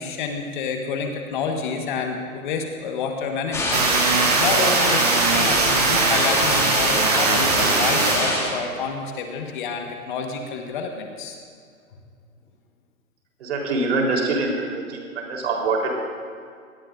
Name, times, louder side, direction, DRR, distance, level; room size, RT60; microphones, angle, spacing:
voice 1, 0.0-11.4, left 5 dB, 35° left, 3 dB, 1.6 m, -28 dB
sound 1, 3.5-8.5, left 2 dB, 5° left, 1.9 m, -22 dB
sound 2, 3.7-8.9, right 8 dB, 30° right, 0.6 m, -23 dB
voice 2, 13.4-16.1, right 3 dB, 50° right, 0 dB, 4.2 m, -24 dB
23.5 x 19.0 x 2.7 m, 2.2 s
figure-of-eight pair, 135°, 43 cm